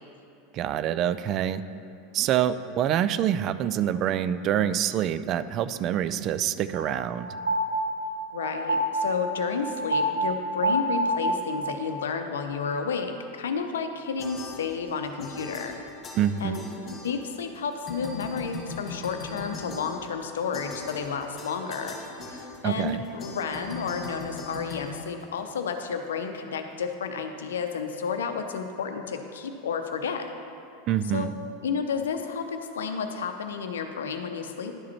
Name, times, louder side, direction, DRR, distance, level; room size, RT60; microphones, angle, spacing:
voice 1, 0.5-1.6 2.1-7.3 16.2-16.6 22.6-23.0 30.9-31.3, right 10 dB, 45° right, 14 dB, 0.3 m, -26 dB
sound 1, 6.7-11.9, right 1 dB, 85° right, 0.7 m, -28 dB
voice 2, 8.3-15.7 16.4-16.6 17.0-22.0 22.3-30.3 31.1-31.3 31.6-34.7, left 6 dB, 80° left, 6 dB, 0.6 m, -31 dB
sound 2, 14.2-14.9 15.2-17.6 17.9-25.7, left 3 dB, 30° left, 2.0 m, -40 dB
11.0 x 5.0 x 4.2 m, 2.7 s
hypercardioid pair, 90°, 0 cm